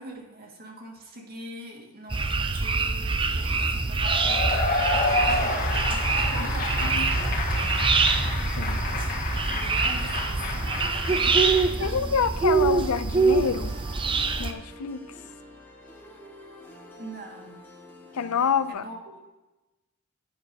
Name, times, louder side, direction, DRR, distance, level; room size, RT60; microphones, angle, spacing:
voice 1, 0.0-7.9 8.5-11.9 12.6-12.7 17.0-17.6 18.7-19.2, right 2 dB, 45° right, 0 dB, 2.0 m, -43 dB
sound 1, 2.1-14.5, right 4 dB, 25° right, 0.5 m, -25 dB
Cheering / Applause / Crowd, 4.0-11.7, left 2 dB, 40° left, 1.8 m, -29 dB
sound 2, 10.6-18.7, equal, 10° left, 1.6 m, -46 dB
voice 2, 11.8-13.8 14.4-15.0 18.1-18.8, left 6 dB, 70° left, 13 dB, 0.5 m, -27 dB
11.0 x 9.8 x 2.8 m, 1.1 s
head